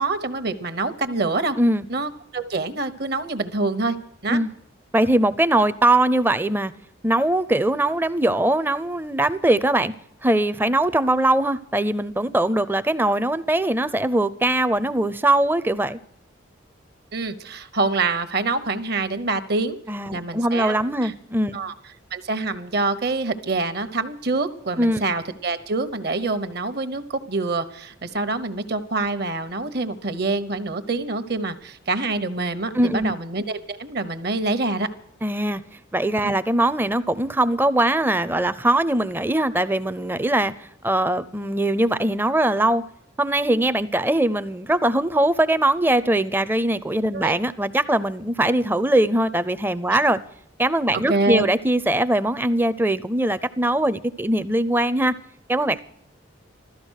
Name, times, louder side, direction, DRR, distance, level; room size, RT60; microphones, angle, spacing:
voice 1, 0.0-1.6 1.9-4.0 4.2-4.4 17.1-19.8 20.1-21.1 21.5-21.7 22.1-34.9 36.2-36.3 47.1-47.4 51.1-51.5, right 3 dB, 55° right, 1.0 m, -26 dB
voice 2, 4.9-6.7 7.0-9.9 10.2-16.0 19.9-21.6 24.8-25.0 32.7-33.2 35.2-35.6 35.9-42.8 43.2-50.2 50.6-55.1 55.5-55.8, right 1 dB, 10° right, 0.5 m, -21 dB
16.0 x 13.5 x 6.4 m
head